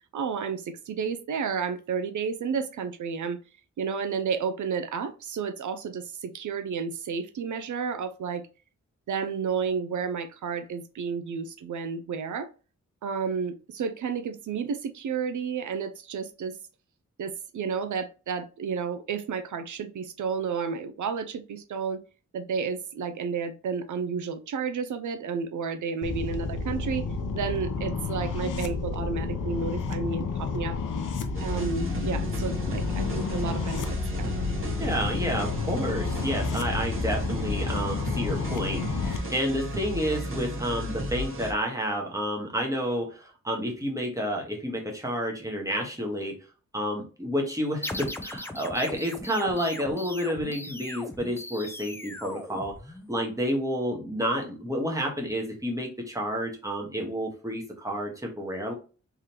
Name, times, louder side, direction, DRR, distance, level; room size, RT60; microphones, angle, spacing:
voice 1, 0.1-3.4 3.8-8.4 9.1-12.5 13.0-16.6 17.2-22.0 22.3-27.1 27.3-30.8 31.4-33.8 34.1-34.3, right 6 dB, 75° right, 9 dB, 0.5 m, -31 dB
sound 1, 26.0-39.2, left 4 dB, 80° left, 0.7 m, -31 dB
sound 2, 31.3-41.5, equal, 45° right, 1.5 m, -33 dB
voice 2, 34.8-46.3 46.7-52.7 53.1-58.7, equal, 10° right, 0 dB, 1.3 m, -30 dB
sound 3, 47.8-53.3, left 1 dB, 10° left, 0.5 m, -39 dB
3.7 x 3.3 x 2.9 m, 0.35 s
wide cardioid pair, 100°, 30 cm